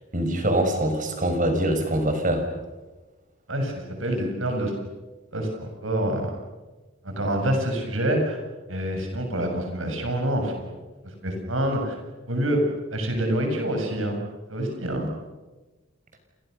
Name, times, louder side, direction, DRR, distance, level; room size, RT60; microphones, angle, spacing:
voice 1, 0.1-2.5, right 1 dB, 40° right, 6 dB, 6.0 m, -23 dB
voice 2, 3.5-4.7 5.3-6.3 7.0-8.4 8.7-10.7 11.2-11.9 12.3-12.6 12.9-14.2 14.5-15.1, right 1 dB, 85° right, 3 dB, 7.4 m, -26 dB
30.0 x 28.0 x 6.7 m, 1.2 s
head